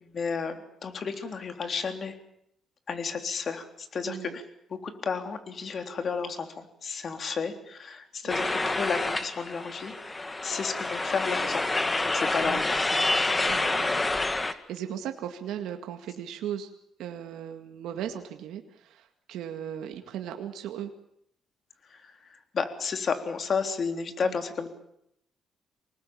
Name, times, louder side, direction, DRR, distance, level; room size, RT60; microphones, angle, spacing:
voice 1, 0.1-2.2 2.9-4.4 4.8-12.8 13.4-13.5 21.9-22.1 22.5-24.7, left 5 dB, 50° left, 7 dB, 3.6 m, -32 dB
voice 2, 4.0-4.4 8.2-8.5 12.4-12.6 12.9-13.0 13.5-14.1 14.3-16.7 17.0-20.9 24.2-24.4, right 10 dB, 85° right, 5 dB, 2.1 m, -37 dB
sound 1, 8.3-14.5, left 2 dB, 20° left, 1.9 m, -28 dB
26.0 x 20.0 x 8.8 m, 0.75 s
cardioid pair, 90°, 0 cm